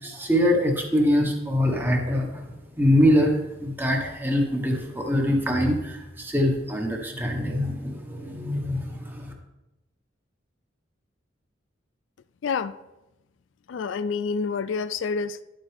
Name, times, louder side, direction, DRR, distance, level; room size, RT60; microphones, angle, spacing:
voice 1, 0.0-9.3, equal, 10° right, 1 dB, 1.5 m, -24 dB
voice 2, 12.4-12.7 13.7-15.4, left 5 dB, 70° left, 14 dB, 0.4 m, -28 dB
11.0 x 7.8 x 3.6 m, 0.97 s
head